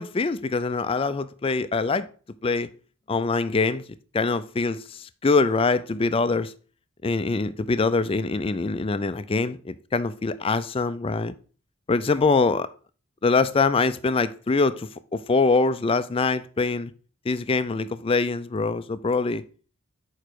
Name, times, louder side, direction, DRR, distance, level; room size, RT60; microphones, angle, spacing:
voice 1, 0.0-2.1 2.4-2.7 3.1-3.8 4.1-6.5 7.0-11.3 11.9-12.7 13.2-16.9 17.3-19.4, left 3 dB, 25° left, 0.4 m, -24 dB
6.8 x 4.9 x 4.6 m
head